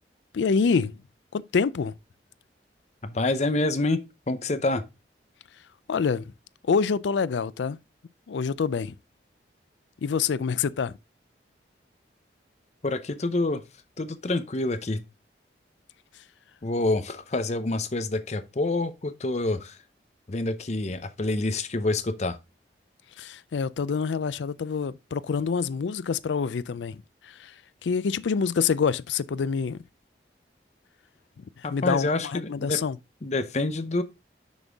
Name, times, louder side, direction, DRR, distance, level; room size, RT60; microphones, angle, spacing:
voice 1, 0.3-0.9 1.3-1.9 5.9-6.3 6.7-7.8 8.3-8.9 10.0-11.0 23.2-27.5 27.8-29.8 31.6-33.0, left 5 dB, 85° left, 0.4 m, -26 dB
voice 2, 3.0-4.0 4.3-4.8 12.8-13.6 14.0-15.0 16.6-19.8 20.3-22.4 31.6-32.8 33.2-34.0, left 2 dB, 40° left, 0.6 m, -27 dB
6.3 x 5.4 x 3.4 m
head